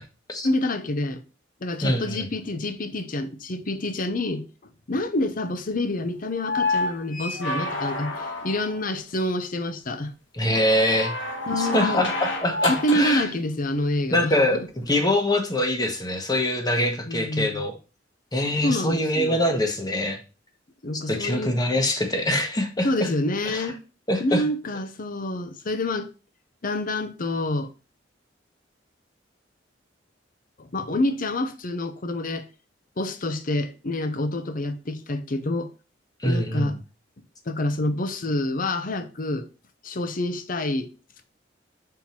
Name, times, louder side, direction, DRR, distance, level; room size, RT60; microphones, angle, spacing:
voice 1, 0.4-1.2 1.6-4.5 4.9-10.1 11.5-12.0 12.7-14.7 17.1-17.6 18.6-19.4 20.8-21.6 22.8-23.8 24.2-26.1 26.6-27.7 30.6-32.5 33.0-35.7 36.2-36.8 37.5-39.5 39.8-40.9, left 1 dB, 45° left, 0.8 m, -27 dB
voice 2, 1.8-2.3 10.3-11.1 11.6-12.1 12.4-13.3 14.1-17.7 18.3-20.2 21.1-23.1 23.5-23.7 24.1-24.4 36.2-36.7, left 1 dB, 20° left, 1.1 m, -24 dB
sound 1, 6.3-8.9 10.7-13.2 14.8-14.9, left 2 dB, 90° left, 1.7 m, -29 dB
5.7 x 4.5 x 4.4 m
head